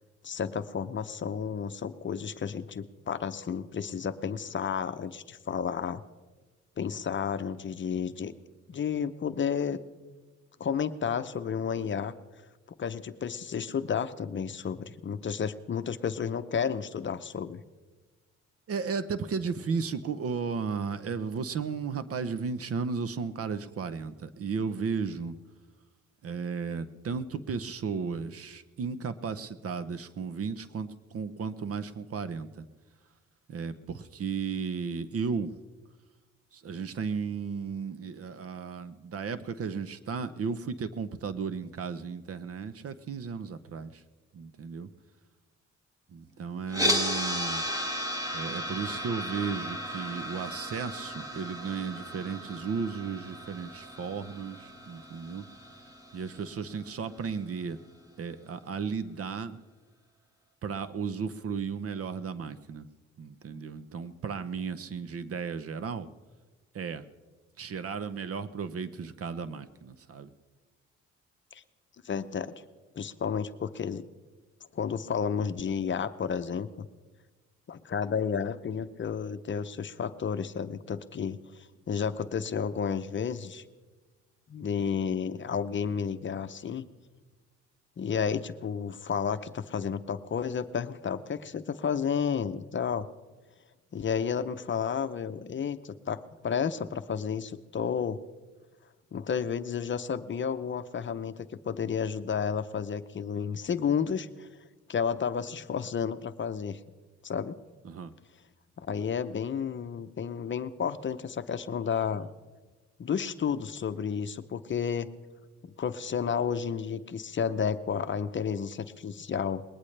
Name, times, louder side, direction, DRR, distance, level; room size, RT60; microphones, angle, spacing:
voice 1, 0.2-6.0 6.8-8.3 8.7-9.8 10.6-12.1 12.8-17.6 71.5-71.6 72.0-72.5 73.0-74.0 74.7-76.9 77.7-83.6 84.5-86.8 88.0-93.1 93.9-98.2 99.1-104.5 104.9-106.8 107.2-107.6 108.8-112.3 113.0-115.1 115.6-119.6, left 7 dB, 40° left, 11 dB, 0.7 m, -31 dB
voice 2, 18.7-25.4 26.2-32.7 33.5-35.5 36.5-44.0 44.3-44.9 46.1-47.6 48.3-55.4 56.1-57.8 58.2-59.6 60.6-62.9 63.2-66.1 66.7-67.0 67.6-70.3 107.8-108.1, right 5 dB, 50° right, 14 dB, 0.9 m, -34 dB
sound 1, 46.7-56.8, equal, 10° right, 1.7 m, -34 dB
20.5 x 19.0 x 3.3 m, 1.3 s
cardioid pair, 90°, 30 cm